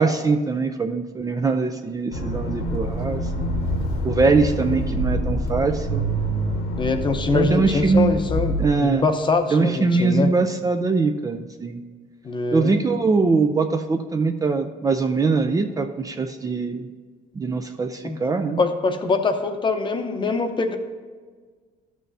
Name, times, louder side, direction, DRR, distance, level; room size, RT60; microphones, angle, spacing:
voice 1, 0.0-3.4 4.0-6.0 7.3-8.1 8.6-9.1 9.5-11.8 12.5-16.9 17.4-18.6, right 4 dB, 20° right, 5 dB, 0.4 m, -22 dB
Accelerating revving vroom, 2.1-8.7, equal, 85° left, 1.3 m, -26 dB
voice 2, 6.8-8.5 8.8-10.3 12.2-12.8 18.0-18.2 18.6-20.8, left 3 dB, 30° left, 6 dB, 0.8 m, -23 dB
13.0 x 6.2 x 2.7 m, 1.5 s
cardioid pair, 110°, 17 cm